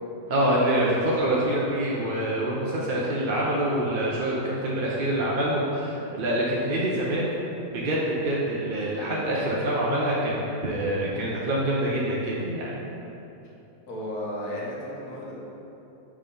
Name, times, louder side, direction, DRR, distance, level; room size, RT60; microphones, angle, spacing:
voice 1, 0.3-7.3 7.7-12.8, right 1 dB, 45° right, -5 dB, 0.7 m, -26 dB
voice 2, 13.9-15.3, left 1 dB, 85° left, -5 dB, 1.8 m, -33 dB
5.4 x 5.0 x 5.4 m, 3.0 s
omnidirectional pair, 1.6 m